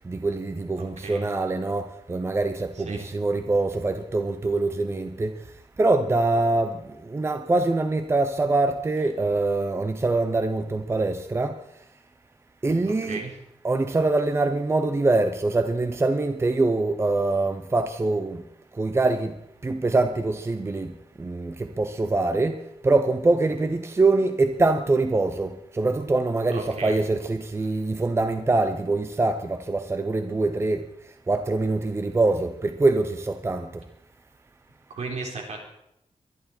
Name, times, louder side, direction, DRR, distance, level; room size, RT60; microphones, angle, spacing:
voice 1, 0.1-5.3 5.8-6.8 7.0-11.6 12.6-13.2 13.6-18.4 18.8-19.3 19.6-20.9 21.2-22.6 22.8-30.8 31.3-33.7, right 2 dB, 20° right, 8 dB, 0.8 m, -24 dB
voice 2, 0.8-1.2 2.7-3.1 12.9-13.4 26.5-27.0 34.9-35.6, right 3 dB, 70° right, 1 dB, 4.0 m, -35 dB
22.5 x 11.0 x 4.4 m, 0.79 s
wide cardioid pair, 175°, 12 cm